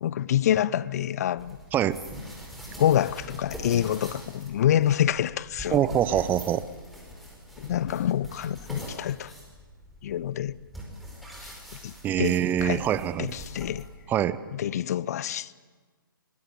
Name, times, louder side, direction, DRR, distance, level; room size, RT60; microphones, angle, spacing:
voice 1, 0.0-1.6 2.8-5.9 7.6-9.3 10.0-10.6 11.4-11.5 11.8-12.8 13.2-13.9 14.5-15.5, left 11 dB, 45° left, 0.7 m, -26 dB
sound 1, 1.4-14.1, equal, ahead, 5.2 m, -43 dB
voice 2, 5.7-6.6 12.0-13.3 14.1-14.4, right 10 dB, 15° right, 0.7 m, -24 dB
24.5 x 20.5 x 8.6 m
figure-of-eight pair, 130°, 12 cm